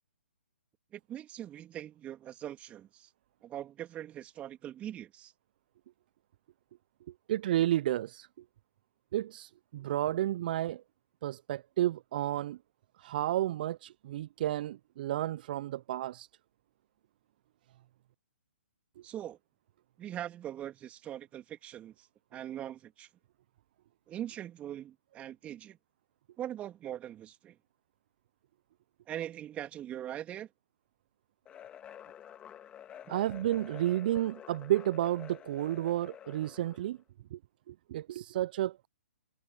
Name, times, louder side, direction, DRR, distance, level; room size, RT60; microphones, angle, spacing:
voice 1, 0.9-3.1 3.4-5.3 19.0-19.4 20.0-23.1 24.1-25.8 26.4-27.6 29.1-30.5 33.1-33.2, right 11 dB, 20° right, 3.0 m, -42 dB
voice 2, 7.3-8.3 9.1-10.8 11.2-12.6 13.0-16.3 33.1-37.0 37.3-37.4 37.7-38.9, right 13 dB, 45° right, 0.6 m, -31 dB
sound 1, 31.5-36.9, left 10 dB, 15° left, 2.1 m, -49 dB
figure-of-eight pair, 130°, 7 cm